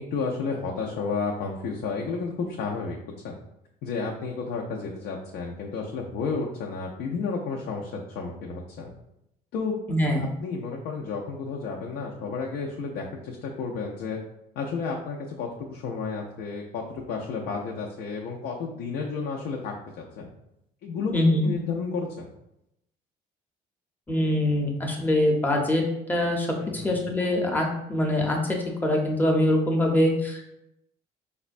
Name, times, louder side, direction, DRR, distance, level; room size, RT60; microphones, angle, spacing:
voice 1, 0.0-3.0 3.2-3.4 3.8-8.9 9.5-9.8 10.4-14.2 14.6-20.3 20.8-21.1 21.4-22.3 26.6-27.0, left 4 dB, 70° left, -1 dB, 0.5 m, -32 dB
voice 2, 9.9-10.3 21.1-21.5 24.1-26.5 26.7-28.6 28.8-30.5, left 1 dB, 10° left, 0 dB, 0.7 m, -23 dB
4.9 x 2.2 x 2.5 m, 0.82 s
cardioid pair, 110°, 17 cm